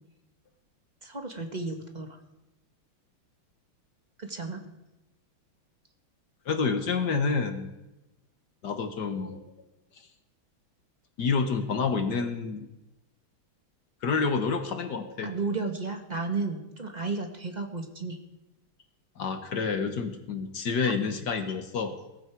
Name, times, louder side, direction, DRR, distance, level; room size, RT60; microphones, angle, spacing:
voice 1, 1.0-2.2 4.2-4.7 15.2-18.2 20.8-20.9, right 3 dB, 25° right, 4 dB, 1.5 m, -33 dB
voice 2, 6.5-7.7 8.6-9.4 11.2-12.7 14.0-15.3 19.2-22.0, left 5 dB, 55° left, 6 dB, 1.8 m, -28 dB
18.5 x 15.0 x 4.6 m, 0.96 s
omnidirectional pair, 2.2 m